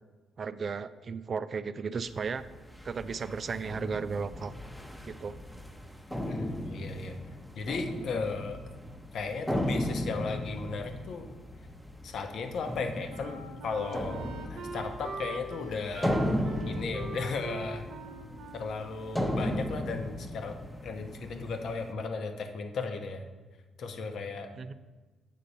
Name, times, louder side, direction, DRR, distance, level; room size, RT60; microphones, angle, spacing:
voice 1, 0.4-2.4 2.8-4.5 5.1-5.4 24.6-24.7, right 5 dB, 45° right, 14 dB, 0.4 m, -34 dB
sound 1, 2.0-21.9, equal, ahead, 0.8 m, -36 dB
voice 2, 6.3-7.2 7.5-8.6 9.1-11.3 12.0-17.9 18.5-20.6 20.8-23.3 23.8-24.5, left 4 dB, 65° left, 5 dB, 0.9 m, -36 dB
Wind instrument woodwind instrument, 13.1-19.9, right 3 dB, 90° right, 1.0 m, -43 dB
8.2 x 3.8 x 6.8 m, 1.3 s
cardioid pair, 90°, 0 cm